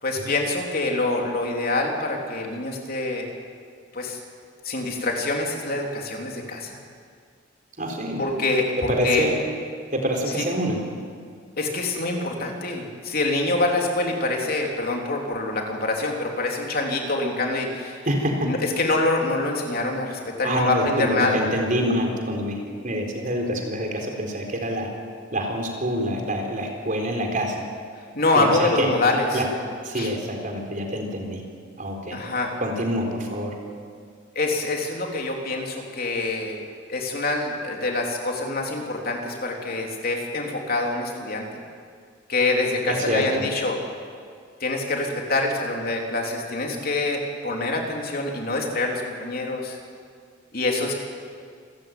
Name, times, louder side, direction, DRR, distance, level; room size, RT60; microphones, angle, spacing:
voice 1, 0.0-3.3 3.9-4.2 4.6-6.8 8.2-9.3 10.4-10.5 11.6-18.0 18.4-21.4 28.1-29.4 29.9-30.1 32.1-32.5 34.4-36.6 36.9-41.5 42.3-43.8 44.6-49.8 50.5-50.9, left 2 dB, 50° left, 1 dB, 3.6 m, -25 dB
voice 2, 7.8-8.2 8.9-9.4 9.9-10.8 18.1-18.5 20.4-24.9 25.3-27.6 28.3-28.9 29.3-29.4 29.8-31.4 31.8-32.2 32.6-33.5 42.9-43.4, equal, 40° right, 2 dB, 4.2 m, -26 dB
27.5 x 15.0 x 9.2 m, 2.2 s
head